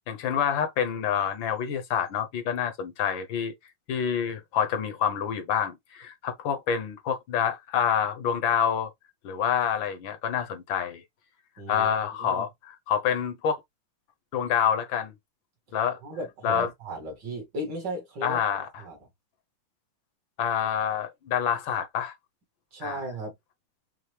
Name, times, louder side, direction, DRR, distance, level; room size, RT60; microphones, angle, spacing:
voice 1, 0.1-3.5 3.9-8.9 9.2-11.0 11.7-13.6 14.3-15.1 15.7-16.0 16.4-16.7 18.2-18.7 20.4-22.1 22.8-23.0, left 8 dB, 70° left, 1.5 m, -27 dB
voice 2, 11.6-11.9 12.2-12.4 16.0-18.4 18.8-19.0 22.7-23.3, right 1 dB, 55° right, 2.4 m, -35 dB
5.8 x 2.6 x 3.3 m
omnidirectional pair, 2.3 m